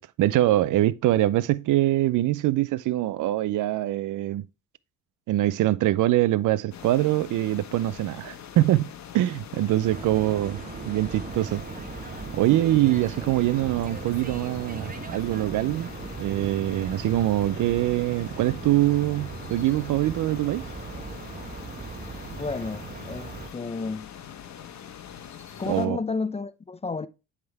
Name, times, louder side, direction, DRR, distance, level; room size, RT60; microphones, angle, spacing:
voice 1, 0.0-4.4 5.3-10.6 10.9-11.6 12.3-15.9 16.2-20.6 25.7-26.0, right 15 dB, 60° right, 0.5 m, -24 dB
sound 1, 6.7-25.9, left 9 dB, 50° left, 1.2 m, -43 dB
sound 2, 9.8-23.5, right 4 dB, 25° right, 1.0 m, -38 dB
voice 2, 22.3-24.1 25.6-27.1, left 4 dB, 20° left, 0.5 m, -31 dB
10.5 x 3.7 x 3.4 m
supercardioid pair, 65°, 35 cm